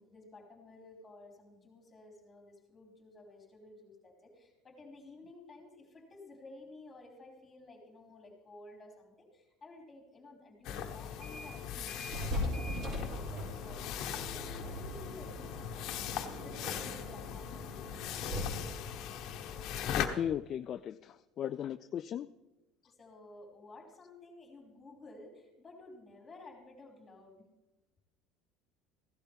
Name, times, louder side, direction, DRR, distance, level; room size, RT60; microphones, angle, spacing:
voice 1, 0.0-16.0 16.4-18.7 22.8-27.5, left 2 dB, 20° left, 0 dB, 4.0 m, -54 dB
sound 1, 10.6-20.1, left 9 dB, 60° left, 1.2 m, -40 dB
sound 2, 11.0-11.6 11.9-20.3, left 1 dB, 40° right, 5.0 m, -41 dB
voice 2, 20.0-22.3, left 10 dB, 45° left, 12 dB, 0.3 m, -37 dB
16.0 x 12.0 x 3.6 m, 1.0 s
supercardioid pair, 115°, 0 cm